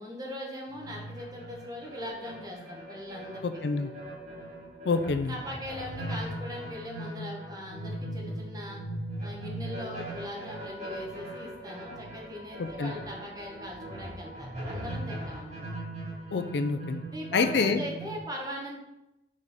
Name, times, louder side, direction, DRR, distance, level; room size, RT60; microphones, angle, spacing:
voice 1, 0.0-3.4 3.8-4.0 5.3-8.8 9.2-15.7 17.1-18.8, left 1 dB, 20° right, -1 dB, 1.1 m, -40 dB
sound 1, 0.7-18.2, right 1 dB, 40° right, 2.0 m, -39 dB
voice 2, 3.4-3.9 4.8-5.3 12.8-12.9 16.3-17.0 17.3-17.8, left 4 dB, 65° left, 9 dB, 0.4 m, -27 dB
5.3 x 4.0 x 4.9 m, 0.94 s
head